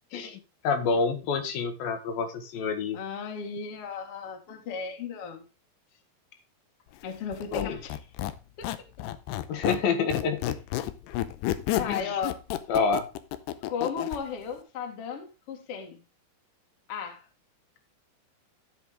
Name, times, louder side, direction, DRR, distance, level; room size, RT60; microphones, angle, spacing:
voice 1, 0.1-3.0 7.5-7.8 9.5-10.6 11.8-12.2 12.7-13.0, left 5 dB, 65° left, 8 dB, 2.9 m, -28 dB
voice 2, 2.9-5.5 7.0-8.0 8.6-8.7 11.7-12.4 13.7-16.0 16.9-17.3, left 6 dB, 45° left, 2 dB, 2.2 m, -35 dB
Squeak, 7.3-9.9 10.1-14.2, left 14 dB, 90° left, 2.8 m, -31 dB
15.0 x 5.1 x 3.6 m, 0.30 s
omnidirectional pair, 4.8 m